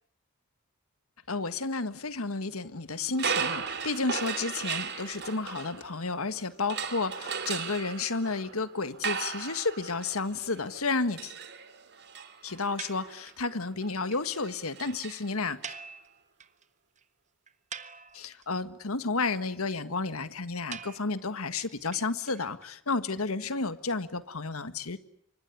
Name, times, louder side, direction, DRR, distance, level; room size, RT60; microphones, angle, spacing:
voice 1, 1.3-11.3 12.4-15.7 18.1-25.0, left 3 dB, 75° left, 12 dB, 1.7 m, -32 dB
sound 1, 3.1-6.2 6.7-15.7, right 6 dB, 55° right, 2.6 m, -37 dB
sound 2, 12.8-13.5 13.8-13.9 14.1-14.2 14.5-14.6 14.8-14.9 15.6-16.6 17.0-17.1 17.5-18.4 20.7-22.7, right 6 dB, 35° right, 1.4 m, -44 dB
26.5 x 25.0 x 8.4 m, 0.67 s
head